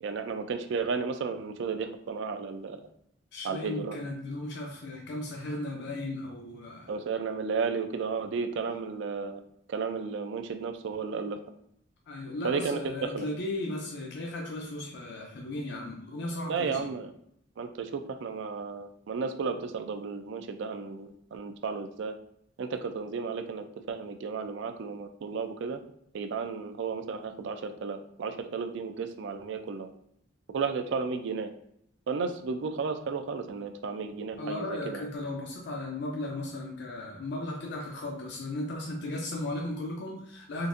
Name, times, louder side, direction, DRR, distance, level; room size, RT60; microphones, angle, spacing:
voice 1, 0.0-2.8 3.4-4.0 6.9-9.4 9.7-11.4 12.4-13.3 16.5-17.1 17.6-22.1 22.6-25.8 26.1-29.9 30.5-31.5 32.1-35.1, right 5 dB, 65° right, 7 dB, 0.4 m, -33 dB
voice 2, 3.3-6.9 12.1-16.9 34.4-40.7, left 1 dB, 60° left, -1 dB, 0.5 m, -36 dB
3.9 x 2.5 x 2.5 m, 0.70 s
head